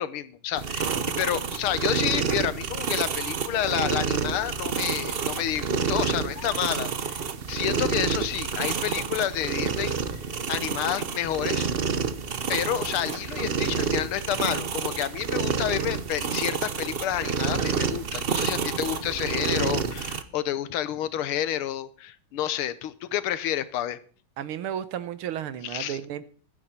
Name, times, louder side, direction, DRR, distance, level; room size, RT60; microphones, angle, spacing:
voice 1, 0.0-7.2 7.5-10.2 10.5-11.7 12.5-24.0 25.6-26.0, left 11 dB, 85° left, 1.8 m, -29 dB
sound 1, 0.6-20.2, right 6 dB, 60° right, 0.6 m, -29 dB
voice 2, 24.4-26.2, right 10 dB, 80° right, 1.8 m, -33 dB
15.0 x 12.5 x 4.4 m
omnidirectional pair, 2.3 m